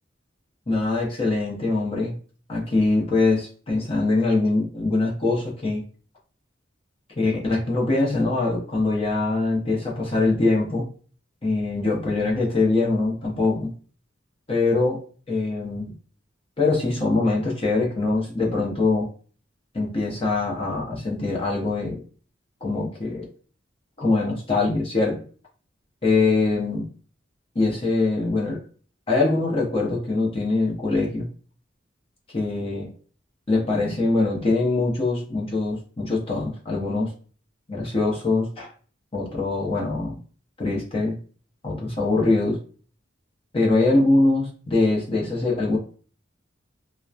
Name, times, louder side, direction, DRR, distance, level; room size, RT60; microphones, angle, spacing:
voice 1, 0.7-2.1 2.5-5.8 7.2-10.9 11.4-13.7 14.5-15.0 15.3-15.9 16.6-19.1 19.7-22.0 22.6-23.3 24.0-25.2 26.0-26.9 27.5-28.6 29.1-31.3 32.3-32.9 33.5-37.1 37.7-38.7 39.1-40.2 40.6-41.2 41.6-42.6 43.5-45.8, left 3 dB, 30° left, -2 dB, 0.7 m, -23 dB
2.9 x 2.1 x 2.3 m, 0.42 s
head